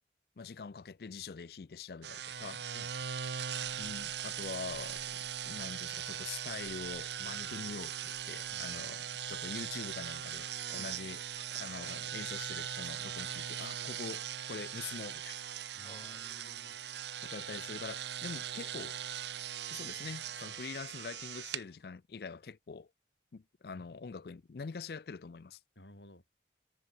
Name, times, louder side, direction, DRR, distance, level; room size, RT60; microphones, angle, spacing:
voice 1, 0.4-2.6 3.8-5.2 5.4-11.2 11.5-15.5 17.2-19.0 19.7-22.9 23.3-25.6, left 5 dB, 60° left, 0.4 m, -44 dB
sound 1, 2.0-21.6, right 9 dB, 80° right, 1.2 m, -40 dB
voice 2, 2.7-3.3 8.5-9.0 10.8-11.0 15.7-16.8 23.7-24.1 25.8-26.2, left 1 dB, 85° left, 7.4 m, -56 dB
sound 2, 10.3-14.1 14.5-14.8 15.8-21.4, left 3 dB, 30° left, 4.0 m, -64 dB
head